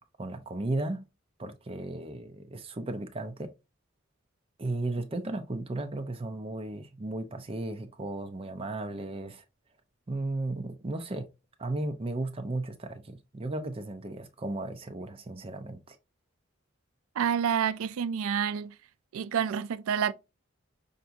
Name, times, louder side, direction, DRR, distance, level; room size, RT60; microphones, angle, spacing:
voice 1, 0.2-1.1 1.4-3.5 4.6-9.4 10.1-11.3 11.6-16.0, right 2 dB, 25° right, 0.5 m, -35 dB
voice 2, 17.2-18.7 19.1-20.1, right 7 dB, 85° right, 0.3 m, -28 dB
5.7 x 2.6 x 2.5 m
head